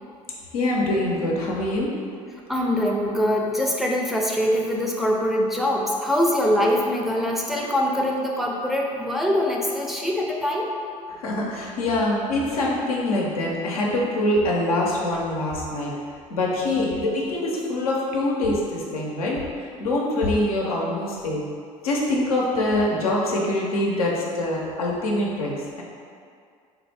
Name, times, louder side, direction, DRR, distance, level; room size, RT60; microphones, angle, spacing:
voice 1, 0.5-1.9 11.1-15.9 16.3-21.4 21.8-25.8, left 1 dB, 90° left, -3 dB, 0.5 m, -24 dB
voice 2, 2.5-10.7, left 1 dB, ahead, -2 dB, 0.4 m, -23 dB
3.4 x 2.0 x 3.3 m, 2.2 s
hypercardioid pair, 70°, 18 cm